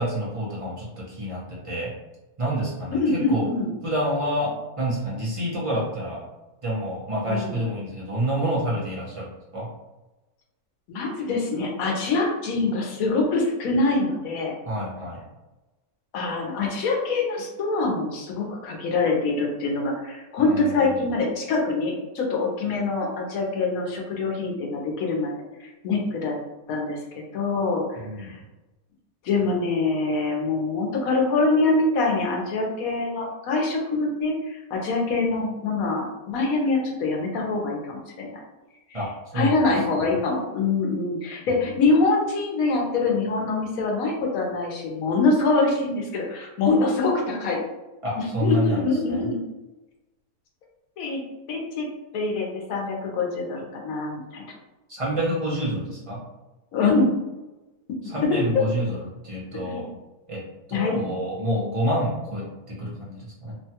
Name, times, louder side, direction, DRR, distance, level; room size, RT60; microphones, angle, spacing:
voice 1, 0.0-1.9 2.4-3.5 3.8-6.2 6.6-9.7 14.6-15.2 20.4-20.9 28.0-28.4 38.9-39.1 39.3-39.7 48.0-48.8 49.1-49.2 54.9-56.2 58.0-59.0 59.2-60.0 60.3-60.4 60.7-63.5, equal, 35° right, -6 dB, 0.5 m, -28 dB
voice 2, 2.9-3.7 7.3-7.6 10.9-14.5 16.1-25.3 25.6-26.4 26.7-28.4 29.2-38.3 38.9-39.0 39.3-47.6 48.2-49.4 51.0-51.2 51.5-51.9 52.1-54.4 56.7-57.1 58.0-58.4 59.5-59.8 60.7-61.0, left 3 dB, 70° left, 0 dB, 1.1 m, -24 dB
3.0 x 2.3 x 2.8 m, 1.1 s
omnidirectional pair, 1.5 m